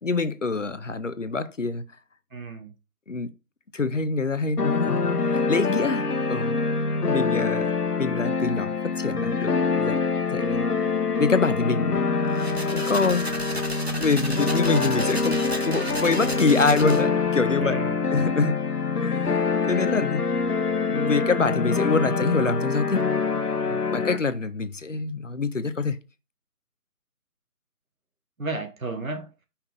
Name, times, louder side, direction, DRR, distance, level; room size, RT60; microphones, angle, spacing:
voice 1, 0.0-1.8 3.1-3.3 3.7-6.6 6.9-7.7 8.0-10.0 10.3-10.7 11.2-12.0 12.7-13.3 14.0-17.8 18.1-18.6 18.9-20.4 20.8-23.0 23.9-26.0, left 4 dB, 55° left, 0.6 m, -26 dB
voice 2, 2.3-2.7 7.4-7.7 17.6-18.1 23.7-23.9 28.4-29.3, right 3 dB, 60° right, 1.3 m, -33 dB
sound 1, 4.6-24.2, left 4 dB, 80° left, 1.0 m, -25 dB
sound 2, 12.2-17.2, right 1 dB, 45° right, 0.6 m, -34 dB
5.7 x 3.3 x 5.2 m
figure-of-eight pair, 175°, 46 cm